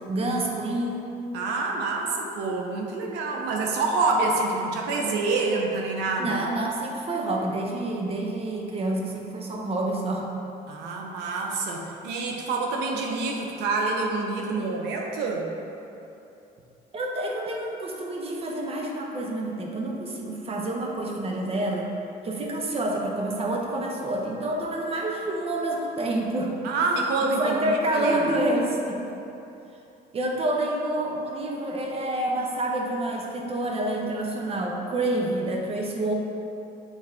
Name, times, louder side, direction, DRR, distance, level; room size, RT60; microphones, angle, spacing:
voice 1, 0.1-1.0 6.2-10.3 16.9-21.9 22.2-26.5 27.2-29.2 30.1-36.1, right 1 dB, 35° right, 0 dB, 0.9 m, -28 dB
voice 2, 1.3-6.4 10.7-15.5 26.6-28.2, right 3 dB, 90° right, 0 dB, 0.7 m, -27 dB
7.3 x 4.0 x 3.5 m, 2.8 s
cardioid pair, 110°, 17 cm